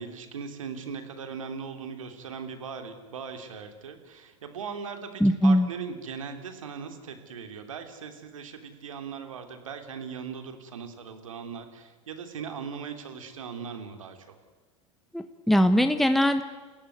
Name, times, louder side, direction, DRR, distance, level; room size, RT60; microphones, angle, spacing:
voice 1, 0.0-14.3, right 6 dB, 80° right, 7 dB, 3.1 m, -39 dB
voice 2, 5.2-5.7 15.1-16.4, equal, ahead, 8 dB, 1.3 m, -21 dB
29.0 x 15.5 x 9.5 m, 1.3 s
hypercardioid pair, 85°, 17 cm